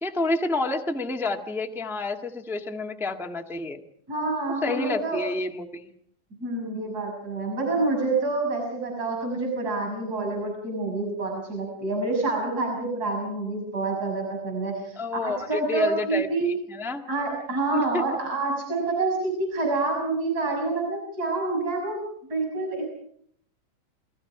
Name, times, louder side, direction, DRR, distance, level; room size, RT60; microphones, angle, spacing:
voice 1, 0.0-3.8 4.6-5.9 15.0-16.3 16.7-17.0 17.7-18.0, left 3 dB, ahead, 3 dB, 0.6 m, -29 dB
voice 2, 4.1-5.3 6.4-16.6 17.1-22.0 22.3-22.9, right 3 dB, 30° right, 1 dB, 6.9 m, -27 dB
29.0 x 21.0 x 4.9 m, 0.64 s
omnidirectional pair, 3.4 m